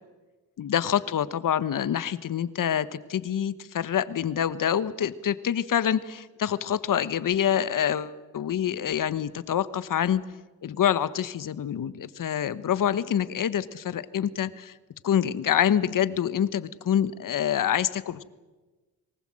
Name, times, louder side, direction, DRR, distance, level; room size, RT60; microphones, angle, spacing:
voice 1, 0.6-10.2 10.6-14.7 15.0-18.2, left 9 dB, 65° left, 16 dB, 1.1 m, -26 dB
23.0 x 19.5 x 7.7 m, 1.2 s
cardioid pair, 80°, 35 cm